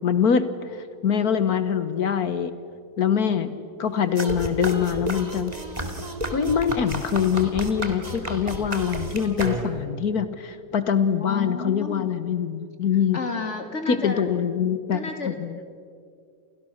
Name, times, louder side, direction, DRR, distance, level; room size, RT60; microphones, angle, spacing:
voice 1, 0.0-2.5 3.0-5.5 6.3-13.2 13.9-15.0 15.3-15.6, left 7 dB, 65° left, 12 dB, 1.6 m, -24 dB
sound 1, 4.2-10.0, right 1 dB, 25° right, 2.5 m, -31 dB
voice 2, 11.2-12.1 13.1-14.3 14.9-15.4, left 4 dB, 45° left, 5 dB, 3.3 m, -31 dB
29.5 x 29.0 x 6.5 m, 2.3 s
omnidirectional pair, 1.7 m